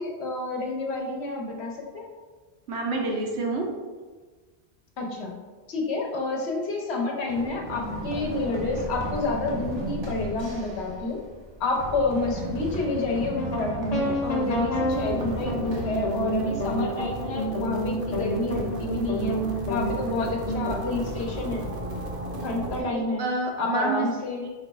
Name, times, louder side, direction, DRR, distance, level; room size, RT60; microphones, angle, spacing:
voice 1, 0.0-2.1 5.0-5.3 5.7-11.2 11.6-19.4 19.7-21.7 22.4-23.2 23.6-24.5, left 2 dB, 80° left, 1 dB, 1.0 m, -29 dB
voice 2, 2.7-3.7 22.8-24.1 24.4-24.5, right 3 dB, 85° right, 0 dB, 1.0 m, -28 dB
Run, 7.3-17.0, right 1 dB, 40° right, 0.4 m, -35 dB
sound 1, 13.3-20.7, equal, 45° left, 0.7 m, -29 dB
sound 2, 13.8-22.8, right 2 dB, 60° right, 0.9 m, -36 dB
4.7 x 2.3 x 4.0 m, 1.4 s
omnidirectional pair, 1.1 m